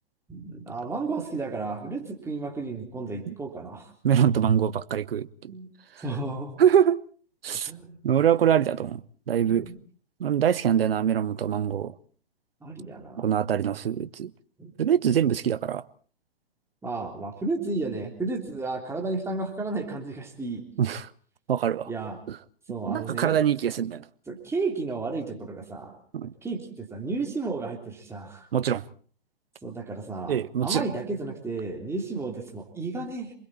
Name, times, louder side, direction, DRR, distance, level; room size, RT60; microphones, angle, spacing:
voice 1, 0.3-3.9 5.5-5.7 6.0-6.5 7.7-8.0 9.4-9.8 12.6-13.3 14.6-14.7 16.8-20.6 21.9-22.2 22.7-23.4 24.3-26.0 26.4-28.5 29.6-33.3, right 3 dB, 10° right, 3.5 m, -33 dB
voice 2, 4.0-5.5 6.6-7.0 7.4-7.7 8.0-9.7 10.2-11.9 13.2-14.3 14.8-15.8 20.8-21.1 21.5-21.9 22.3-22.4 22.9-24.0 26.1-26.3 28.5-28.8 30.3-30.9, right 9 dB, 65° right, 1.0 m, -24 dB
28.0 x 21.5 x 4.3 m
figure-of-eight pair, 120°, 31 cm